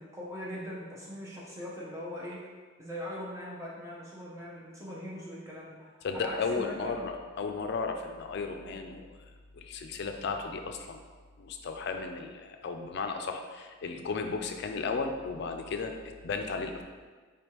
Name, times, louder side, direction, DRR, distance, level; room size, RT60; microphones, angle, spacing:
voice 1, 0.0-2.4 2.8-7.1, equal, 15° right, -6 dB, 0.9 m, -41 dB
voice 2, 6.0-9.1 9.5-11.0 11.4-16.0 16.2-16.8, left 4 dB, 55° left, 5 dB, 0.4 m, -34 dB
4.6 x 3.3 x 3.0 m, 1.4 s
head